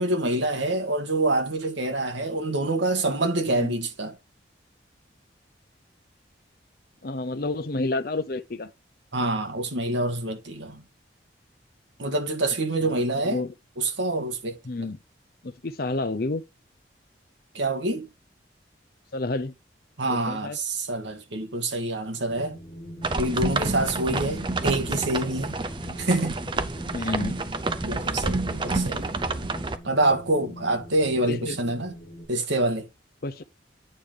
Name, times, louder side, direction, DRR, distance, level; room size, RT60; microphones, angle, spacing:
voice 1, 0.0-4.1 9.1-10.8 12.0-13.4 13.8-14.6 17.5-18.1 20.0-22.6 23.2-25.6 26.0-26.4 27.0-27.1 27.8-29.2 29.8-31.9 32.3-32.9, right 2 dB, 80° right, 1.7 m, -26 dB
voice 2, 7.0-8.7 12.8-13.5 14.7-15.0 15.4-16.4 19.1-19.5 20.1-20.6 24.1-24.4 26.9-27.4 31.3-31.6 33.2-33.4, left 2 dB, 55° left, 0.7 m, -30 dB
Wind, 22.3-32.3, equal, 35° left, 2.4 m, -43 dB
sound 1, 23.0-29.8, right 3 dB, 25° right, 0.6 m, -29 dB
8.7 x 5.1 x 3.8 m
head